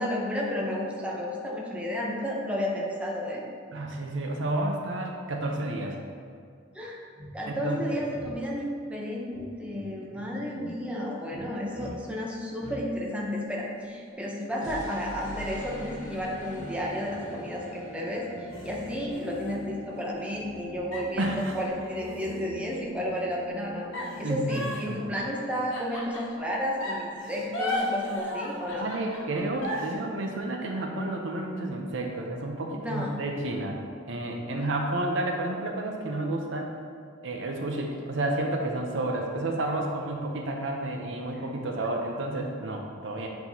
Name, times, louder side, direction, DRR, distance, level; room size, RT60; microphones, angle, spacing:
voice 1, 0.0-3.4 6.7-7.0 7.3-18.3 18.6-23.9 24.2-28.9 32.8-33.2 41.3-41.4, equal, 5° right, -3 dB, 0.7 m, -32 dB
voice 2, 3.7-6.0 7.5-8.0 10.1-10.2 21.2-21.5 24.2-25.1 28.8-33.8 34.1-36.7 37.2-43.3, right 2 dB, 70° right, 1 dB, 0.7 m, -31 dB
sound 1, 7.1-7.3 8.1-8.3 9.3-9.8 10.5-10.7 11.3-11.5 11.7-11.9 12.6-12.8 14.6-24.4, equal, 40° left, 1.4 m, -42 dB
sound 2, 13.3-14.7 15.4-17.6 18.0-18.1 18.5-20.6 20.9-22.9 23.9-26.4 26.8-29.9, left 1 dB, 85° left, 1.2 m, -37 dB
7.8 x 4.4 x 2.8 m, 2.2 s
head